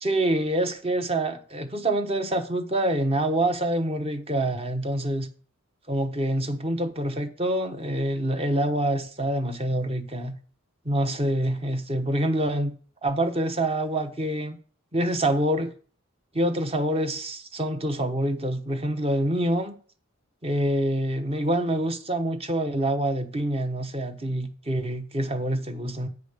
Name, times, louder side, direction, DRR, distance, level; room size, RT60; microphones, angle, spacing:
voice 1, 0.0-5.3 5.9-10.3 10.8-12.7 13.0-14.6 14.9-15.7 16.3-19.8 20.4-26.1, right 1 dB, 30° right, 1.0 m, -26 dB
9.5 x 5.1 x 6.7 m
head